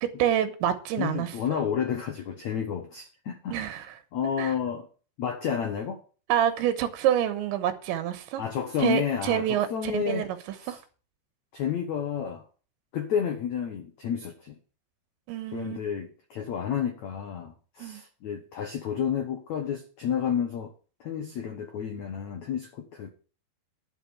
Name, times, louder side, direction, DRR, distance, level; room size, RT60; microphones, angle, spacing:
voice 1, 0.0-1.3 3.5-3.9 4.4-4.5 6.3-8.4 8.8-10.4 10.7-10.8 15.3-15.8 17.8-18.0, right 10 dB, 90° right, 3.4 m, -27 dB
voice 2, 1.0-3.5 4.1-4.9 5.2-6.0 8.4-10.3 10.6-10.8 11.5-12.5 12.9-14.6 15.5-20.7 21.0-23.1, left 8 dB, 90° left, 1.6 m, -31 dB
11.0 x 5.6 x 8.4 m
omnidirectional pair, 5.2 m